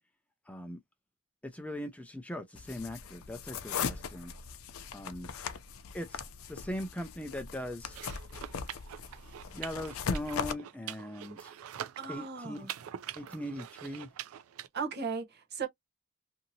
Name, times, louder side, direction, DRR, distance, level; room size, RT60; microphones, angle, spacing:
voice 1, 0.5-0.8 1.5-4.3 4.9-5.3 5.9-6.2 6.5-8.0 9.5-11.5 12.1-12.7 13.2-14.1, left 1 dB, 5° left, 0.4 m, -40 dB
sound 1, 2.5-10.5, left 6 dB, 90° left, 0.5 m, -39 dB
sound 2, 7.8-14.7, right 10 dB, 90° right, 0.4 m, -44 dB
voice 2, 12.0-12.7 14.7-15.7, right 5 dB, 50° right, 0.8 m, -36 dB
2.7 x 2.7 x 2.7 m
head